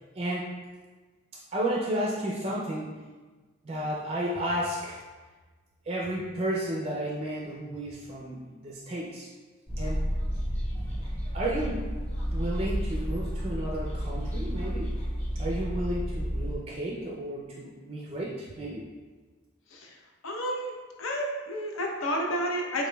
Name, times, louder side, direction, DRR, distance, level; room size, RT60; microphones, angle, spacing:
voice 1, 0.1-0.6 1.3-2.9 3.6-5.0 5.9-9.3 9.8-10.0 10.5-10.6 11.3-11.8 12.3-14.9 15.4-18.8, right 1 dB, 30° right, -3 dB, 0.4 m, -32 dB
sound 1, 9.7-16.6, equal, 30° left, 0.9 m, -31 dB
voice 2, 19.7-22.9, equal, 80° left, 0 dB, 0.7 m, -31 dB
5.0 x 3.5 x 2.2 m, 1.3 s
head